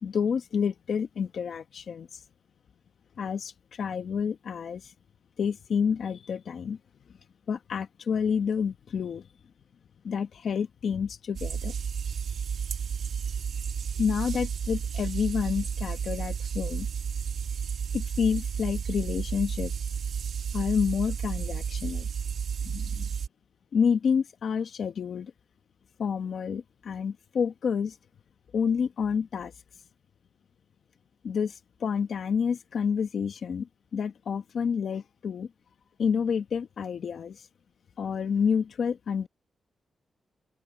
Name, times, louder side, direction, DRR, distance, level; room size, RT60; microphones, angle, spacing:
voice 1, 0.0-2.1 3.2-4.9 5.4-6.8 7.5-9.2 10.0-11.7 14.0-16.9 17.9-19.7 20.5-22.1 22.6-23.1 23.7-25.3 26.0-27.9 28.5-29.5 31.2-33.7 33.9-35.5 36.0-37.4 38.0-39.3, left 6 dB, 70° left, 1.1 m, -29 dB
sound 1, 11.3-23.3, right 7 dB, 75° right, 1.8 m, -32 dB
open air
wide cardioid pair, 115°, 0 cm